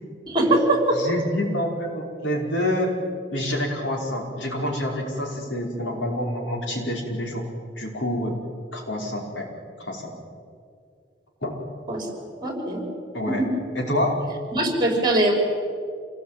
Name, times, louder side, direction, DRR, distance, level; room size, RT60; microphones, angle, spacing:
voice 1, 0.3-1.0 11.9-12.1 12.4-12.8 14.5-15.3, right 1 dB, 25° right, 2 dB, 5.4 m, -21 dB
voice 2, 0.9-2.9 3.3-7.5 7.8-8.4 8.7-9.5 9.8-10.1 11.4-11.6 13.1-13.4 13.7-14.2, left 1 dB, 70° left, 1 dB, 5.0 m, -27 dB
27.5 x 19.0 x 9.0 m, 2.3 s
head